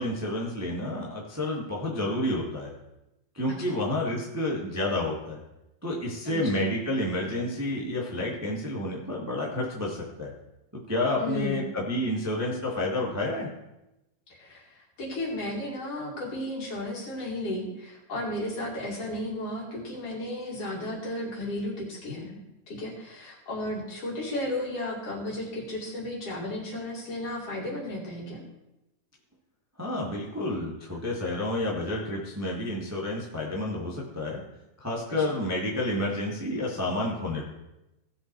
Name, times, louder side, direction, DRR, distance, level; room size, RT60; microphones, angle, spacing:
voice 1, 0.0-2.7 3.3-5.4 5.8-10.3 10.9-13.5 29.8-34.4 34.8-37.5, left 1 dB, 25° right, -4 dB, 0.3 m, -30 dB
voice 2, 6.2-6.7 11.2-11.7 14.3-14.7 15.0-22.4 22.7-28.4 35.2-35.3, left 1 dB, 45° left, -3 dB, 3.1 m, -34 dB
17.5 x 6.0 x 4.6 m, 0.95 s
omnidirectional pair, 4.1 m